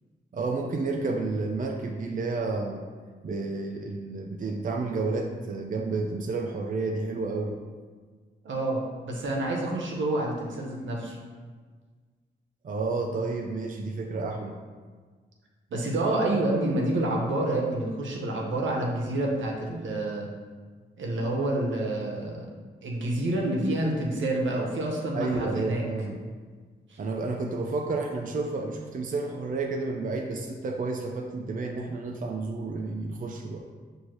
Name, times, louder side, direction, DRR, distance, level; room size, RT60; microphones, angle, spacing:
voice 1, 0.3-2.8 3.2-7.6 12.6-14.6 25.1-26.2 27.0-33.6, right 3 dB, 45° right, 1 dB, 0.5 m, -31 dB
voice 2, 8.4-11.2 15.7-20.3 21.0-22.5 22.8-25.8 26.9-27.0, right 1 dB, 75° right, -1 dB, 0.8 m, -28 dB
6.0 x 2.7 x 3.0 m, 1.5 s
supercardioid pair, 40°, 20 cm